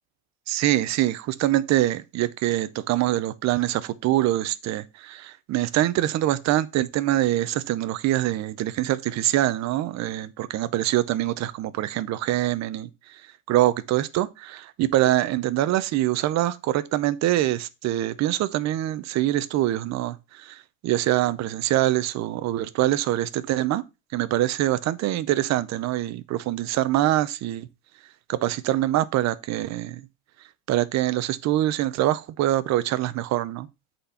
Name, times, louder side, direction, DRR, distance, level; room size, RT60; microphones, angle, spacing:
voice 1, 0.5-12.9 13.5-23.8 24.1-27.7 28.3-30.0 30.7-33.7, right 14 dB, 35° right, 0.6 m, -24 dB
8.1 x 4.3 x 5.7 m
cardioid pair, 145°, 47 cm